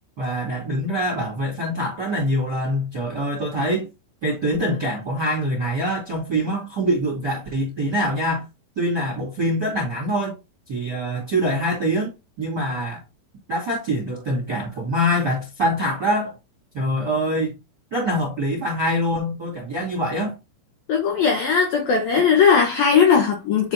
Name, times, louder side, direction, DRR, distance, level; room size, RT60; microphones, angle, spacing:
voice 1, 0.2-3.9 4.2-8.4 8.7-10.4 10.7-12.1 12.4-13.0 13.5-16.3 16.7-17.5 17.9-20.3, equal, 45° right, 1.3 m, -24 dB
voice 2, 20.9-23.7, left 6 dB, 75° left, 2.1 m, -18 dB
10.0 x 3.5 x 2.9 m
omnidirectional pair, 5.7 m